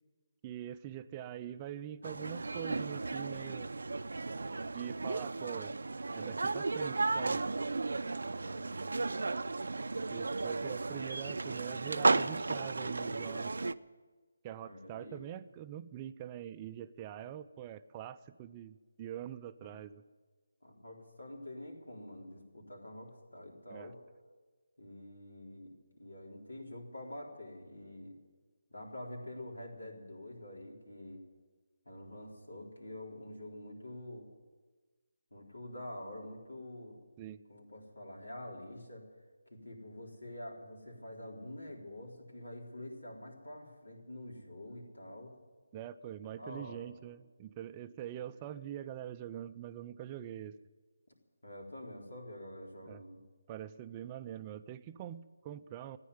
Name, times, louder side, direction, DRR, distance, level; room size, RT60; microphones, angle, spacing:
voice 1, 0.4-3.7 4.7-5.8 6.1-7.5 10.1-13.5 14.4-20.0 23.7-23.9 37.2-37.4 45.7-50.6 52.9-53.0 53.5-56.0, right 11 dB, 20° right, 12 dB, 0.4 m, -44 dB
sound 1, 2.0-13.7, right 3 dB, 70° right, 0.5 m, -34 dB
voice 2, 8.4-9.1 14.6-15.2 17.2-17.3 19.6-19.7 20.6-24.0 24.8-28.2 28.7-31.2 31.9-34.3 35.3-37.0 37.5-39.1 39.5-45.3 46.4-46.9 48.2-48.3 51.4-53.2, left 1 dB, 85° left, 0 dB, 3.9 m, -47 dB
14.5 x 9.8 x 9.5 m, 1.4 s
figure-of-eight pair, 160°, 0 cm